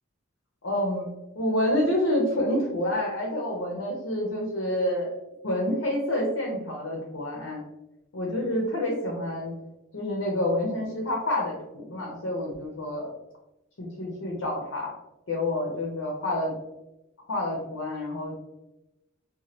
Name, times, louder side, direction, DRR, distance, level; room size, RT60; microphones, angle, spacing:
voice 1, 0.6-1.1 1.4-5.1 5.4-7.6 8.1-9.5 9.9-13.1 13.8-14.9 15.3-16.5 17.3-18.4, left 1 dB, 75° left, -2 dB, 0.6 m, -28 dB
2.8 x 2.2 x 2.9 m, 0.94 s
head